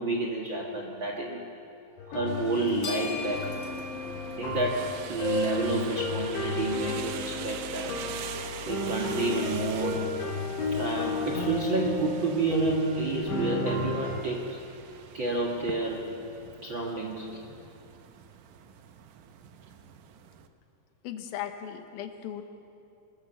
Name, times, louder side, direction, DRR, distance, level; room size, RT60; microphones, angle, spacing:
voice 1, 0.0-1.5 2.1-3.6 4.4-8.0 8.7-10.2 10.7-14.6 15.1-16.1 16.6-17.4, right 3 dB, 55° right, 0 dB, 1.3 m, -30 dB
sound 1, 2.0-14.2, left 3 dB, 90° left, 4.7 m, -32 dB
sound 2, 2.3-20.5, right 7 dB, 85° right, 1.7 m, -43 dB
sound 3, 2.4-16.3, left 3 dB, 50° left, 3.4 m, -47 dB
voice 2, 21.0-22.4, left 10 dB, 70° left, 6 dB, 2.8 m, -37 dB
23.5 x 19.0 x 7.2 m, 2.8 s
omnidirectional pair, 5.0 m